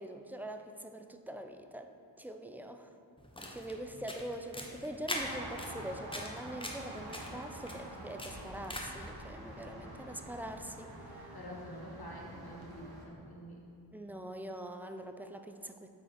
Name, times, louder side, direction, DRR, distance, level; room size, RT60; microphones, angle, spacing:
voice 1, 0.0-1.9 2.2-3.0 3.5-11.1 13.9-15.9, right 1 dB, 5° right, 6 dB, 0.4 m, -43 dB
sound 1, 3.2-9.1, left 1 dB, 10° left, 1.0 m, -43 dB
sound 2, 5.1-13.0, right 1 dB, 55° right, 1.4 m, -47 dB
voice 2, 11.3-13.6, equal, 55° left, -3 dB, 1.7 m, -47 dB
8.3 x 4.5 x 5.0 m, 2.5 s
wide cardioid pair, 50°, 44 cm